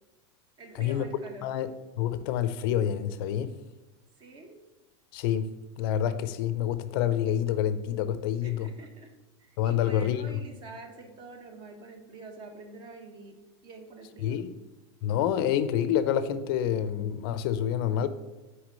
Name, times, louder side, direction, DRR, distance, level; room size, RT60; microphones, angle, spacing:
voice 1, 0.6-1.5 4.2-4.6 8.4-9.1 9.4-14.5, right 3 dB, 35° right, 5 dB, 1.3 m, -47 dB
voice 2, 2.0-3.5 5.1-5.5 5.8-8.7 9.6-10.3 14.2-14.5 15.0-18.1, left 10 dB, 55° left, 13 dB, 0.6 m, -27 dB
6.1 x 4.8 x 6.4 m, 1.2 s
supercardioid pair, 150°, 14 cm